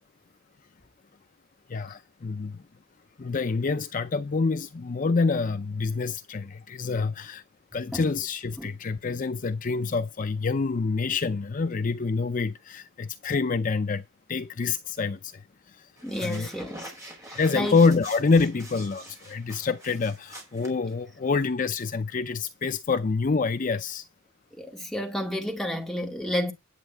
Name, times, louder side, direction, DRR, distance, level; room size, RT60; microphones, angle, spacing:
voice 1, 1.7-2.6 3.2-7.4 7.7-14.0 14.3-15.3 16.2-16.5 17.4-24.0, left 4 dB, 40° left, 0.5 m, -26 dB
voice 2, 16.0-16.9 17.3-17.8 24.6-26.5, left 1 dB, ahead, 2.0 m, -31 dB
sound 1, 16.0-21.3, right 1 dB, 15° right, 5.4 m, -45 dB
10.0 x 8.1 x 4.5 m
head